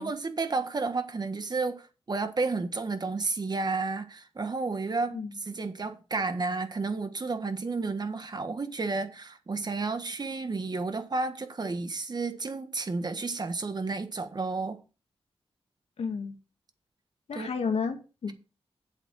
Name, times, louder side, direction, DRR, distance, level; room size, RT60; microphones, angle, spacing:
voice 1, 0.0-5.2 5.4-14.8 17.3-17.5, right 3 dB, 40° right, 1.5 m, -31 dB
voice 2, 16.0-16.3 17.3-18.3, left 5 dB, 90° left, 1.8 m, -32 dB
8.0 x 7.5 x 4.8 m
wide cardioid pair, 90°, 10 cm